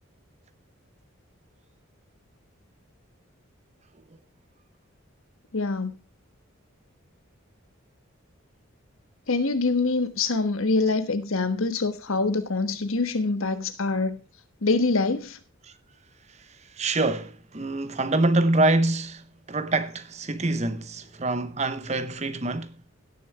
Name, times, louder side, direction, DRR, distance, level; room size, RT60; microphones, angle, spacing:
voice 1, 5.5-5.9 9.3-14.2 14.6-15.4, left 3 dB, 75° left, 1.3 m, -25 dB
voice 2, 16.8-22.7, right 2 dB, 30° right, 0.8 m, -25 dB
16.5 x 6.8 x 3.3 m
head